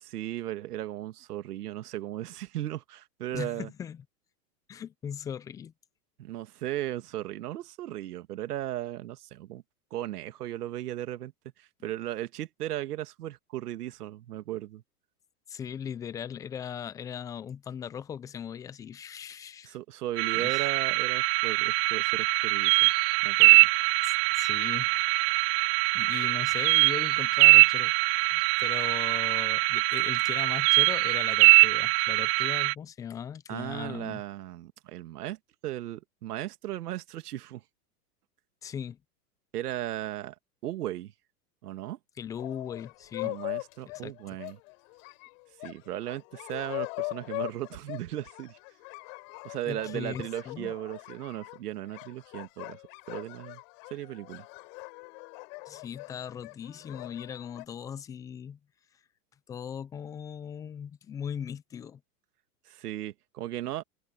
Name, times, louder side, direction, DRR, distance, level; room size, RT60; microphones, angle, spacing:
voice 1, 0.0-3.7 6.2-9.6 9.9-11.3 11.6-14.8 19.6-22.9 23.2-23.7 33.5-35.4 35.6-37.6 39.5-40.3 40.6-41.1 41.6-42.0 43.2-44.6 45.6-48.6 49.4-52.8 53.1-53.6 53.9-54.5 62.7-63.8, right 13 dB, 70° right, 2.4 m, -36 dB
voice 2, 3.3-4.0 4.7-5.7 11.8-11.9 15.5-19.8 20.3-20.6 24.0-24.9 25.9-27.9 28.3-34.2 38.6-39.0 42.2-43.4 43.9-44.1 49.7-50.7 55.7-58.6 59.5-62.0, left 8 dB, 10° left, 0.3 m, -39 dB
sound 1, 20.2-32.7, right 29 dB, 40° right, 0.8 m, -22 dB
sound 2, 42.4-57.6, left 33 dB, 50° left, 5.3 m, -41 dB
hypercardioid pair, 115°, 48 cm